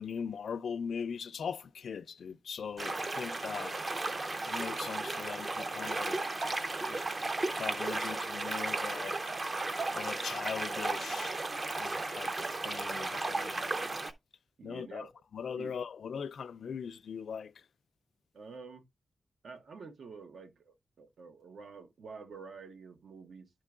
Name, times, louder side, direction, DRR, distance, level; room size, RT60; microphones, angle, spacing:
voice 1, 0.0-3.8 4.5-6.2 6.9-7.1 7.5-9.2 9.9-11.4 11.7-12.3 12.6-13.7 14.6-17.7, left 6 dB, 80° left, 0.3 m, -40 dB
sound 1, 2.8-14.1, right 2 dB, 30° right, 0.5 m, -35 dB
voice 2, 14.6-15.1 15.6-15.8 18.3-18.8 19.4-23.5, right 4 dB, 85° right, 0.9 m, -48 dB
10.5 x 4.5 x 2.3 m
wide cardioid pair, 170°, 0 cm